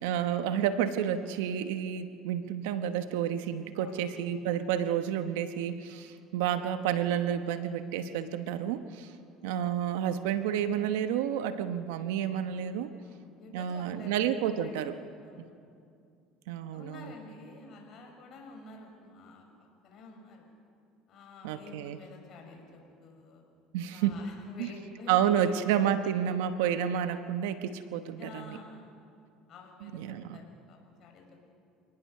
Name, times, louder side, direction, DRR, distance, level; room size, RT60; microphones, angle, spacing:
voice 1, 0.0-9.1 9.4-12.9 13.5-14.9 16.5-17.1 21.4-22.0 23.7-24.2 24.6-24.7 25.1-28.6 29.8-30.4, right 9 dB, 90° right, 9 dB, 1.0 m, -30 dB
voice 2, 13.0-14.9 15.2-15.5 16.7-20.5 21.1-23.4 23.9-26.0 28.2-28.9 29.5-31.5, left 3 dB, 50° left, 2 dB, 5.8 m, -50 dB
27.0 x 18.5 x 6.6 m, 2.4 s
supercardioid pair, 110°, 0 cm